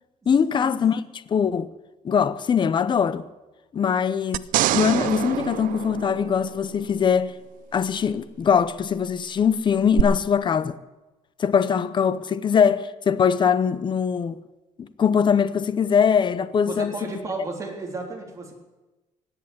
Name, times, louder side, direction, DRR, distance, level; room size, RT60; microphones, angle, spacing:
voice 1, 0.3-1.0 1.3-1.7 2.0-3.2 3.7-7.4 7.7-10.8 11.4-14.4 14.8-16.9, left 7 dB, 35° left, 0.7 m, -22 dB
sound 1, 4.3-6.8 10.0-10.1, right 15 dB, 80° right, 0.5 m, -25 dB
voice 2, 16.7-18.5, right 3 dB, 25° right, 3.7 m, -33 dB
17.5 x 8.4 x 9.6 m
cardioid pair, 135°, 14 cm